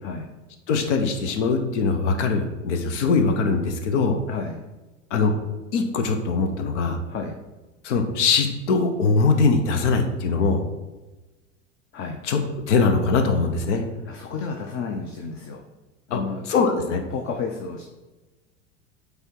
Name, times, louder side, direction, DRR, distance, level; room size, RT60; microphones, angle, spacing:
voice 1, 0.7-4.2 5.1-5.3 5.7-7.0 7.8-10.6 12.2-12.4 12.7-13.8 16.1-16.2 16.5-17.0, left 4 dB, 70° left, 6 dB, 1.0 m, -21 dB
voice 2, 4.3-4.6 7.1-7.3 11.9-12.2 14.1-15.6 16.1-17.9, left 5 dB, 35° left, 3 dB, 0.8 m, -32 dB
7.8 x 3.5 x 4.6 m, 1.1 s
hypercardioid pair, 85°, 37 cm